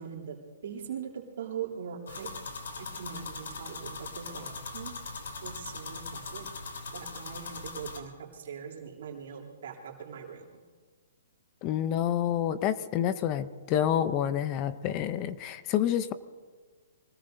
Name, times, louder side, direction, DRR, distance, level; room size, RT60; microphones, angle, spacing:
voice 1, 0.0-2.3 2.8-4.9 5.4-6.5 6.9-10.4, right 7 dB, 60° right, -2 dB, 3.0 m, -41 dB
sound 1, 2.1-8.0, left 4 dB, 80° left, 3.1 m, -40 dB
voice 2, 11.6-16.1, left 10 dB, 25° left, 13 dB, 0.6 m, -28 dB
24.5 x 19.0 x 2.7 m, 1.5 s
hypercardioid pair, 165°, 0 cm